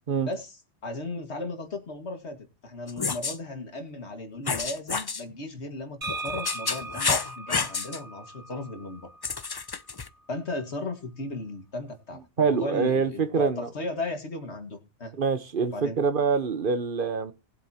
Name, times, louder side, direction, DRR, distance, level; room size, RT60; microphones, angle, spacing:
voice 1, 0.8-2.4 2.6-9.1 10.3-15.1 15.7-16.0, left 2 dB, 70° left, 2.3 m, -36 dB
sound 1, 2.9-3.4 4.5-5.2 6.1-8.0 9.2-10.1, left 5 dB, 35° left, 0.4 m, -29 dB
sound 2, 6.0-9.8, right 2 dB, 85° right, 3.0 m, -39 dB
voice 2, 12.4-13.7 15.2-17.3, right 5 dB, 50° right, 1.2 m, -25 dB
19.0 x 7.6 x 2.9 m
omnidirectional pair, 1.2 m